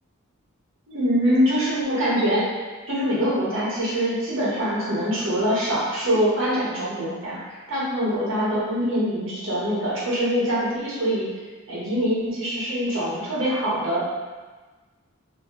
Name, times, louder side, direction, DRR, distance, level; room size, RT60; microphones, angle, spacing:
voice 1, 0.9-2.4 2.9-11.3 11.7-14.0, equal, 65° right, -7 dB, 1.2 m, -24 dB
3.1 x 2.7 x 3.0 m, 1.3 s
head